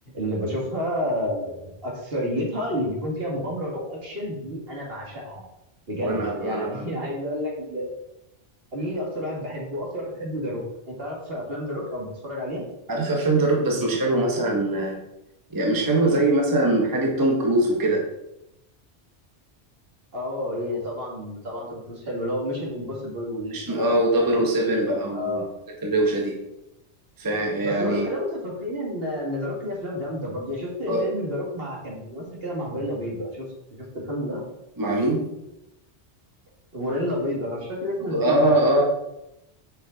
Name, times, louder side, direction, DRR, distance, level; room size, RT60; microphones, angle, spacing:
voice 1, 0.1-5.4 5.9-7.9 8.7-10.6 10.9-12.7 20.1-25.5 27.6-34.4 36.7-38.8, equal, 60° right, -3 dB, 2.0 m, -30 dB
voice 2, 6.0-6.9 12.9-15.0 15.5-18.0 23.5-25.4 25.8-26.4 27.2-28.1 30.9-31.1 34.8-35.3 38.1-38.8, right 1 dB, 20° right, 0 dB, 0.9 m, -22 dB
6.3 x 5.6 x 3.9 m, 0.87 s
omnidirectional pair, 1.2 m